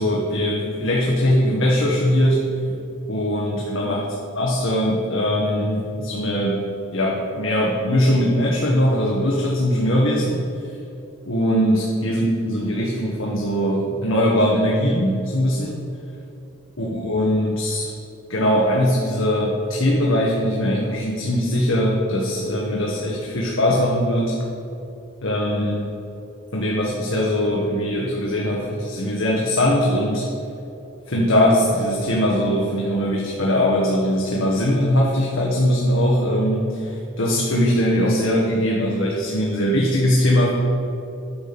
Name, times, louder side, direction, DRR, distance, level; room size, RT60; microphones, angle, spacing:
voice 1, 0.0-2.5 3.1-4.0 4.4-6.6 6.9-10.4 11.2-15.8 16.8-17.9 18.3-24.4 25.2-25.9 26.5-30.3 31.1-40.5, equal, 70° left, -3 dB, 1.4 m, -21 dB
10.5 x 7.0 x 5.9 m, 2.7 s
head